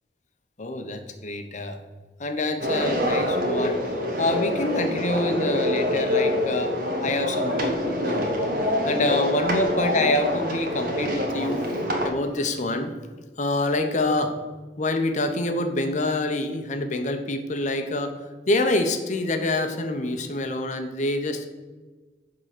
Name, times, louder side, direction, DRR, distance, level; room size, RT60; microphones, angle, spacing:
voice 1, 0.6-1.8 2.2-3.8 4.2-6.7 7.0-8.4 8.8-11.6 12.0-12.9 13.4-14.4 14.8-21.5, left 2 dB, 45° left, 6 dB, 0.9 m, -26 dB
sound 1, 2.6-12.1, left 1 dB, 55° right, 1.3 m, -26 dB
10.0 x 3.8 x 6.6 m, 1.3 s
head